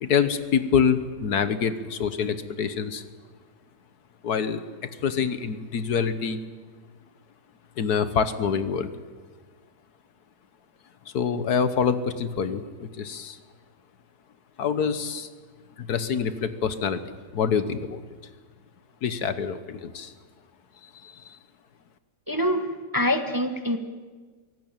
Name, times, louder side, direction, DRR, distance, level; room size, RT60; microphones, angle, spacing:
voice 1, 0.0-3.0 4.2-6.4 7.8-8.9 11.1-13.4 14.6-15.3 15.8-17.0 17.3-18.0 19.0-20.1 20.8-21.4, left 6 dB, 70° left, 12 dB, 1.6 m, -26 dB
voice 2, 22.3-23.8, left 1 dB, 15° right, 7 dB, 1.1 m, -25 dB
23.5 x 17.5 x 9.0 m, 1.5 s
omnidirectional pair, 1.8 m